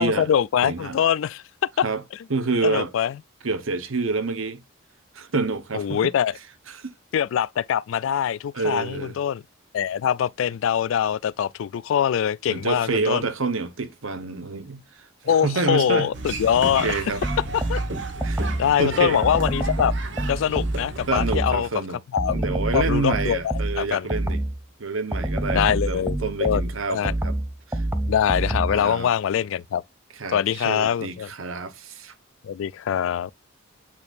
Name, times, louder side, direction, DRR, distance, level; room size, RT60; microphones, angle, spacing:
voice 1, 0.0-1.4 1.8-1.9 2.6-3.1 5.7-6.4 7.1-9.4 9.7-13.2 15.2-16.9 17.5-17.8 18.6-19.9 20.3-21.7 22.1-22.4 22.7-24.1 25.5-26.6 26.9-27.1 28.1-29.8 30.3-31.3 32.4-33.3, left 8 dB, 75° left, 0.3 m, -23 dB
voice 2, 0.6-1.0 1.8-2.0 2.3-2.9 3.4-4.6 5.1-6.1 6.7-6.9 8.5-9.2 12.5-16.1 16.8-17.2 18.2-18.4 18.8-19.2 21.1-22.0 22.3-24.4 24.8-27.3 27.7-27.8 28.7-29.1 30.1-32.1, right 3 dB, 80° right, 1.0 m, -28 dB
sound 1, 16.1-21.4, right 3 dB, 60° right, 1.2 m, -34 dB
sound 2, 17.2-18.8 19.2-21.7 22.2-24.6 25.1-28.9, right 1 dB, 10° right, 0.7 m, -27 dB
8.7 x 4.2 x 2.5 m
head